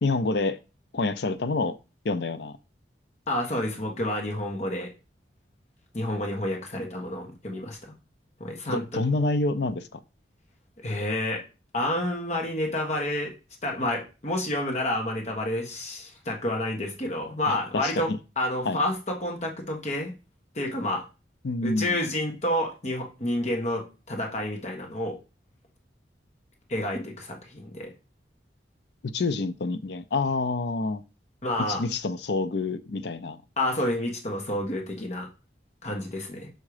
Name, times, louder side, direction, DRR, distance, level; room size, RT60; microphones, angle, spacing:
voice 1, 0.0-0.6 0.9-1.8 2.0-2.6 8.7-10.0 17.5-18.2 18.7-18.8 21.4-22.0 29.0-31.0 31.6-33.4, left 3 dB, 65° left, 0.5 m, -27 dB
voice 2, 3.3-4.9 5.9-7.9 8.4-8.8 10.8-11.4 11.7-13.3 13.6-18.1 18.4-20.1 20.5-21.0 21.6-25.2 26.7-27.9 31.4-31.8 33.6-35.3 35.8-36.5, left 1 dB, 40° left, 1.3 m, -29 dB
6.5 x 3.6 x 4.9 m
head